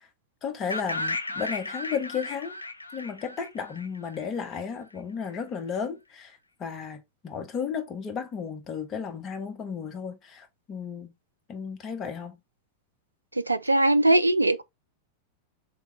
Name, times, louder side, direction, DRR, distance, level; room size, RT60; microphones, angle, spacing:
voice 1, 0.4-2.6 2.9-11.1 11.5-12.4, left 6 dB, 30° left, 1.0 m, -34 dB
sound 1, 0.7-4.6, left 2 dB, 80° left, 0.4 m, -35 dB
voice 2, 13.3-14.6, right 1 dB, 80° right, 0.3 m, -21 dB
3.7 x 3.4 x 3.0 m
figure-of-eight pair, 90°, 0 cm